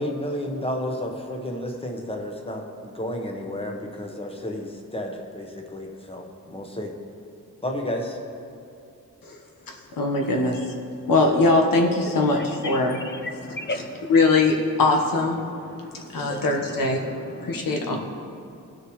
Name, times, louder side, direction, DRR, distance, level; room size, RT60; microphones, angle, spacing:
voice 1, 0.0-6.9 7.6-8.2, left 1 dB, 15° left, 2 dB, 1.2 m, -31 dB
voice 2, 9.9-10.6 11.1-13.0 13.7-13.8 14.1-15.4 16.1-17.1 17.4-18.0, left 3 dB, 85° left, 1 dB, 1.3 m, -21 dB
voice 3, 13.2-14.1 15.8-16.5 16.8-17.6, left 2 dB, 35° left, 6 dB, 0.6 m, -35 dB
18.0 x 6.4 x 3.2 m, 2.6 s
wide cardioid pair, 110°, 33 cm